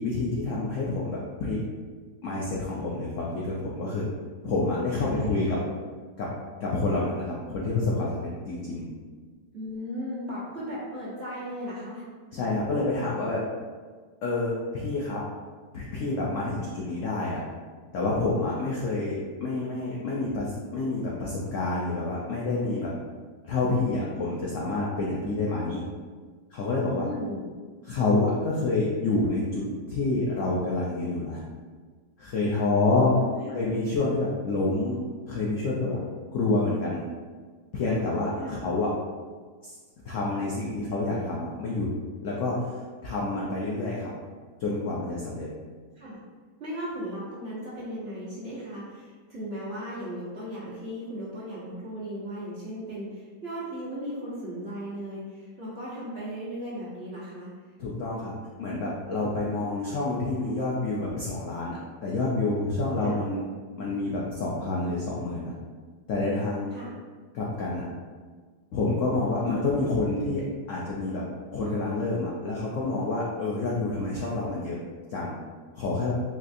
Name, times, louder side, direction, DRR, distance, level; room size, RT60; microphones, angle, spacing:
voice 1, 0.0-1.6 2.2-4.1 4.4-5.6 6.2-6.3 6.6-8.9 12.3-13.4 14.2-15.2 15.7-17.4 17.9-22.9 23.4-25.9 26.5-27.1 27.8-31.4 32.2-33.1 33.5-35.0 35.3-36.0 36.3-37.0 37.7-38.9 39.6-39.7 40.0-41.9 42.2-42.7 43.0-44.1 44.6-45.5 57.8-63.4 63.8-65.5 66.1-66.7 67.3-67.9 68.7-71.2 71.5-74.8 75.1-75.4 75.7-76.1, left 2 dB, 80° left, -4 dB, 0.6 m, -28 dB
voice 2, 4.9-5.5 9.5-12.0 26.8-27.5 32.6-33.5 38.4-38.6 45.9-46.2 46.6-57.5 63.0-63.2 66.7-66.9, equal, 45° right, -9 dB, 0.9 m, -36 dB
4.1 x 2.4 x 2.5 m, 1.5 s
omnidirectional pair, 1.9 m